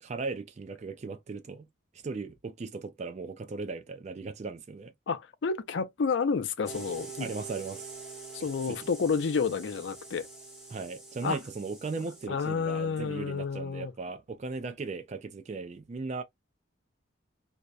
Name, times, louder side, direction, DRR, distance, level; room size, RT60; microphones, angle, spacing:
voice 1, 0.0-1.7 2.0-4.9 7.2-8.0 8.7-8.8 10.7-16.2, right 4 dB, 35° right, 0.3 m, -37 dB
voice 2, 5.1-7.3 8.3-10.3 11.2-11.4 12.3-13.9, left 5 dB, 70° left, 0.4 m, -30 dB
sound 1, 6.6-12.3, right 4 dB, ahead, 0.8 m, -45 dB
2.7 x 2.1 x 2.2 m
head